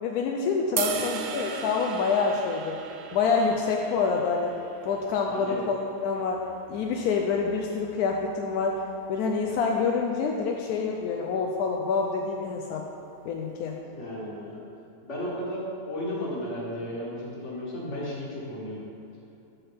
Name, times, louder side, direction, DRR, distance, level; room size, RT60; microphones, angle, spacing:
voice 1, 0.0-2.8 3.1-4.5 4.8-6.4 6.7-8.8 9.1-12.8 13.3-13.8, left 5 dB, 85° left, 0 dB, 1.1 m, -27 dB
voice 2, 0.8-1.3 5.3-5.6 13.9-14.6 15.0-18.9, left 1 dB, 55° left, -4 dB, 1.8 m, -34 dB
sound 1, 0.8-7.0, right 6 dB, 85° right, 0.5 m, -37 dB
8.6 x 5.7 x 3.5 m, 2.8 s
omnidirectional pair, 1.5 m